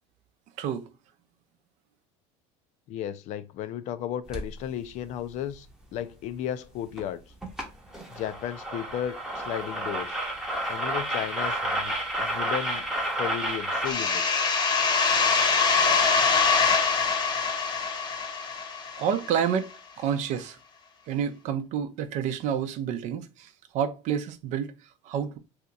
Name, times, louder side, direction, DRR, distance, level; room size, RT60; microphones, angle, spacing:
voice 1, 0.6-0.9 19.0-19.7 20.0-20.6 21.1-25.4, right 8 dB, 55° right, 0.5 m, -29 dB
voice 2, 2.9-5.7 5.9-7.2 8.1-10.2 10.7-12.9 13.2-14.2, left 10 dB, 55° left, 0.4 m, -34 dB
sound 1, 4.3-4.5 7.0-7.1 7.4-7.7 7.9-13.9, right 1 dB, 5° right, 0.8 m, -30 dB
sound 2, 13.9-19.4, left 5 dB, 30° left, 0.9 m, -24 dB
2.8 x 2.4 x 3.9 m
supercardioid pair, 115°, 14 cm